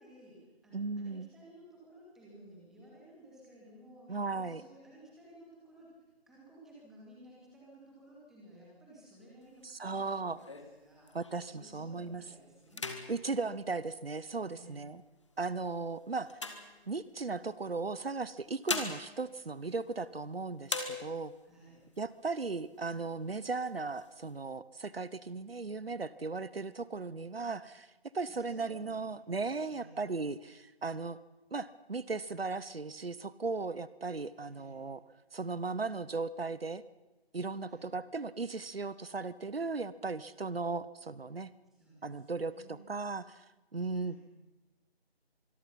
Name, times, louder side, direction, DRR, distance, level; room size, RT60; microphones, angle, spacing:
voice 1, 0.0-5.9 6.3-11.1 11.5-12.9 14.5-14.9 21.4-21.8 28.4-29.1 29.7-30.0 34.4-34.8 37.6-37.9 41.7-42.9 43.9-44.2, right 1 dB, ahead, -6 dB, 2.4 m, -56 dB
voice 2, 0.7-1.3 4.1-4.6 9.6-10.4 11.1-12.2 13.1-15.0 15.4-16.3 16.9-21.3 22.0-27.9 28.1-31.2 31.5-35.0 35.3-36.8 37.3-41.5 42.0-43.5 43.7-44.2, right 3 dB, 65° right, 18 dB, 1.1 m, -37 dB
sound 1, 9.4-11.6 12.1-12.3 12.6-14.6 15.2-17.4 18.3-20.3 20.6-21.5 21.9-22.0 22.3-23.0 23.4-24.3, left 3 dB, 30° left, 1.9 m, -42 dB
25.0 x 23.0 x 5.7 m, 1.1 s
figure-of-eight pair, 160°, 32 cm